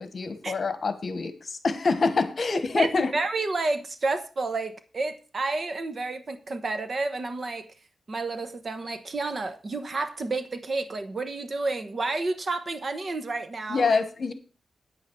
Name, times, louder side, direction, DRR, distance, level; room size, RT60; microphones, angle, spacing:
voice 1, 0.0-3.1 13.7-14.3, left 4 dB, 50° left, 1.3 m, -26 dB
voice 2, 2.8-7.7 8.1-14.0, right 3 dB, 45° right, 1.0 m, -30 dB
8.9 x 8.3 x 4.6 m
wide cardioid pair, 115°, 0 cm